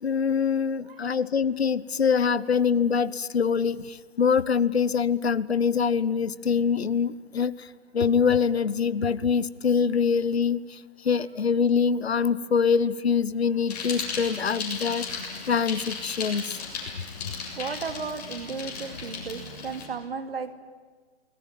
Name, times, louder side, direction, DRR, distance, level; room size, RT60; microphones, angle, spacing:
voice 1, 0.0-7.7 7.9-16.6, left 6 dB, 75° left, 19 dB, 1.1 m, -24 dB
Bicycle, 13.7-19.9, left 5 dB, 40° left, 7.4 m, -36 dB
voice 2, 17.6-20.5, right 5 dB, 60° right, 9 dB, 2.7 m, -34 dB
29.0 x 19.5 x 9.5 m, 1.5 s
figure-of-eight pair, 140°, 32 cm